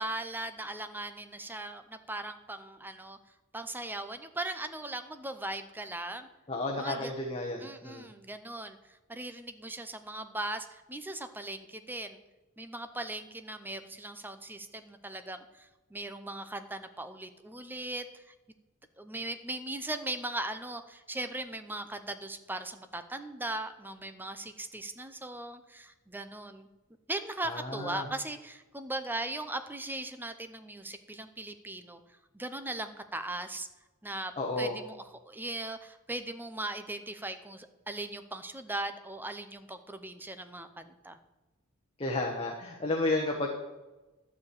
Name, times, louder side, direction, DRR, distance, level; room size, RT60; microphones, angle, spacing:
voice 1, 0.0-3.2 3.5-6.3 6.8-7.1 7.6-8.8 9.1-12.2 12.6-18.2 19.0-26.7 27.1-32.0 32.3-33.7 34.0-34.3 34.6-35.0 35.3-41.2, right 2 dB, 10° right, 9 dB, 0.7 m, -39 dB
voice 2, 6.5-8.1 27.4-28.1 34.4-34.8 42.0-43.5, left 2 dB, 25° left, 0 dB, 1.2 m, -32 dB
12.0 x 4.9 x 8.4 m, 1.1 s
head